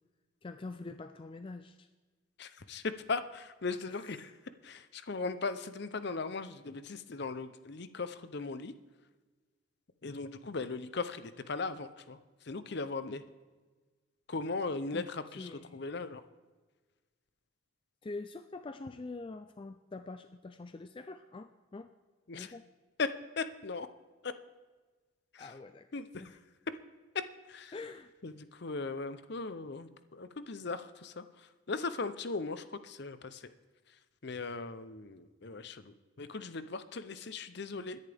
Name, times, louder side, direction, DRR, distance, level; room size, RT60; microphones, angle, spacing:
voice 1, 0.4-1.9 3.9-4.3 14.9-15.8 18.0-21.9 22.3-22.6 25.4-25.9 26.2-26.4 27.7-28.1, left 3 dB, 25° left, 9 dB, 0.3 m, -45 dB
voice 2, 2.4-4.3 4.6-8.7 10.0-12.2 12.4-13.2 14.3-16.2 22.3-22.5 23.0-23.9 24.2-24.3 25.3-25.5 25.9-26.2 27.5-27.7 28.2-33.5 34.2-38.0, left 3 dB, 55° left, 12 dB, 0.7 m, -38 dB
21.5 x 10.5 x 3.5 m, 1.3 s
head